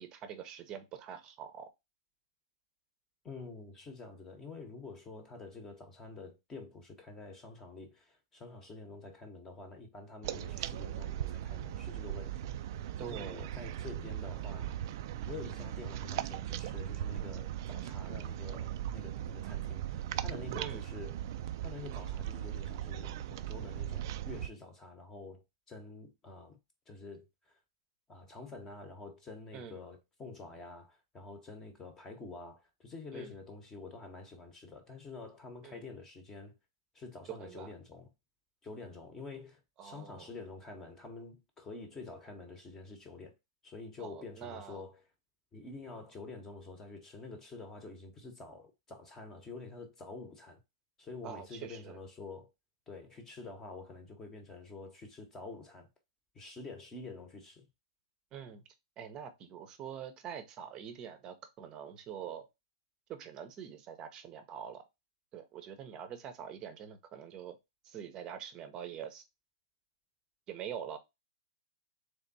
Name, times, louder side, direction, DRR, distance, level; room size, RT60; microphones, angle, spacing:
voice 1, 0.0-1.7 13.0-13.5 20.6-20.8 29.5-29.8 33.1-33.3 35.6-35.8 37.3-37.7 39.8-40.3 44.0-44.8 51.2-52.0 58.3-58.6 59.0-62.5 63.1-64.8 65.3-67.6 67.8-69.2 70.5-71.0, right 8 dB, 25° right, 0.8 m, -44 dB
voice 2, 3.2-12.7 13.0-14.7 15.3-21.2 21.6-26.6 26.9-27.3 28.1-36.5 36.9-38.1 38.6-43.3 43.6-45.0 45.5-50.6 51.0-52.5 52.9-55.9 56.3-57.7, left 3 dB, 15° left, 0.9 m, -48 dB
sound 1, 10.2-24.5, right 12 dB, 50° right, 0.4 m, -38 dB
3.5 x 3.4 x 4.0 m
hypercardioid pair, 145°, 3 cm